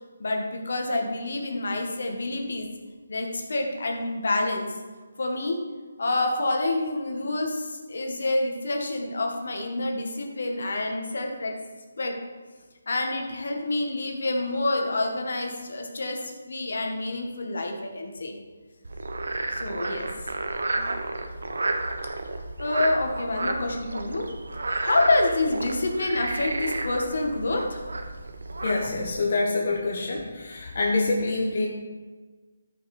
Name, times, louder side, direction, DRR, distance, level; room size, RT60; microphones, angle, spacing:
voice 1, 0.2-2.7 3.1-4.7 5.2-5.6 6.0-11.5 12.0-12.2 12.9-18.4 19.5-20.1 20.7-20.9 22.6-24.3 24.8-27.8, left 2 dB, 70° left, 2 dB, 1.9 m, -27 dB
Frog, 18.8-29.1, right 2 dB, 85° right, 1.2 m, -31 dB
voice 2, 28.6-31.7, left 3 dB, 50° left, -2 dB, 1.4 m, -26 dB
13.5 x 5.9 x 4.4 m, 1.4 s
hypercardioid pair, 165°, 0 cm